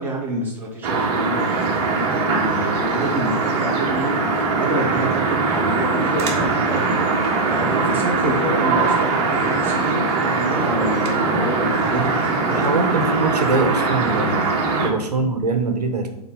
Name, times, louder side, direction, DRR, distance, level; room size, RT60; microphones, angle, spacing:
voice 1, 0.0-4.2 4.6-12.6 14.7-14.9, right 1 dB, 10° right, -5 dB, 2.2 m, -28 dB
sound 1, 0.8-14.9, right 4 dB, 45° right, 1.7 m, -21 dB
voice 2, 12.5-14.4 14.8-16.1, right 3 dB, 85° right, 5 dB, 1.1 m, -22 dB
6.8 x 4.0 x 5.3 m, 0.84 s
hypercardioid pair, 120°, 20 cm